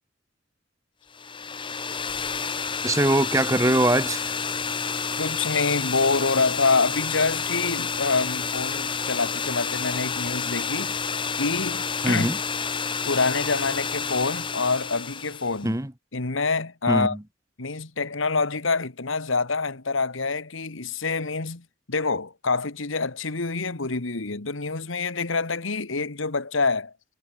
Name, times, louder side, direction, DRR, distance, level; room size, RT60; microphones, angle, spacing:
sound 1, 1.1-15.6, left 5 dB, 25° left, 1.1 m, -29 dB
voice 1, 2.8-4.3 12.0-12.4 15.6-15.9 16.9-17.2, right 1 dB, 15° right, 1.4 m, -22 dB
voice 2, 5.2-11.0 11.4-12.3 13.1-15.8 16.1-17.2 17.6-26.9, left 4 dB, 90° left, 1.7 m, -26 dB
head